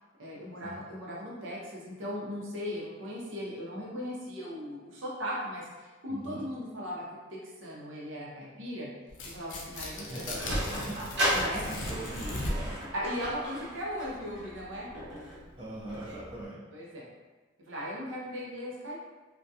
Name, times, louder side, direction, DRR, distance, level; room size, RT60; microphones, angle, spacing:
voice 1, 0.2-8.9 9.2-10.6 11.3-11.6 12.9-14.9 16.0-16.2 16.7-17.0 17.6-19.0, equal, 85° right, -5 dB, 0.7 m, -38 dB
voice 2, 6.1-6.4 10.0-11.1 11.5-12.7 15.6-16.7, right 1 dB, 25° right, -7 dB, 0.5 m, -41 dB
Tearing, 9.1-12.8, left 1 dB, 75° left, 0.5 m, -37 dB
Sliding door, 9.9-16.5, equal, 60° right, 0.9 m, -35 dB
2.3 x 2.2 x 2.7 m, 1.3 s
head